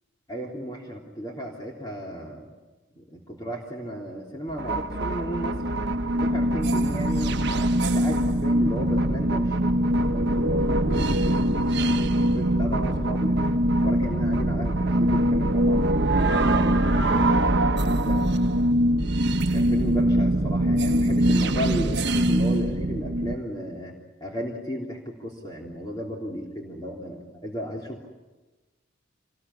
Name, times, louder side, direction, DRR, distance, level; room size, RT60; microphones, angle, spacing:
voice 1, 0.3-2.5 2.9-5.6 6.2-9.6 9.8-12.0 12.3-13.4 13.8-15.8 16.1-17.4 17.8-18.3 19.5-23.9 24.2-28.1, equal, 20° left, -2 dB, 3.3 m, -35 dB
sound 1, 4.5-23.3, right 1 dB, 60° right, 1.2 m, -23 dB
27.0 x 20.5 x 9.9 m, 1.2 s
head